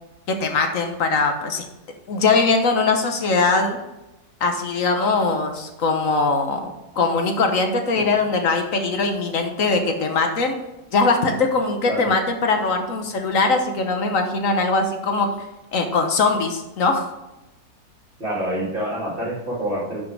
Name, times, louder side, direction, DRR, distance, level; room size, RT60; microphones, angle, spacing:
voice 1, 0.3-1.6 2.1-3.8 4.4-10.6 10.9-15.3 15.7-17.1, left 3 dB, 60° left, 5 dB, 1.4 m, -21 dB
voice 2, 18.2-20.0, right 1 dB, 35° right, -6 dB, 3.0 m, -27 dB
11.5 x 6.1 x 3.4 m, 0.99 s
omnidirectional pair, 1.7 m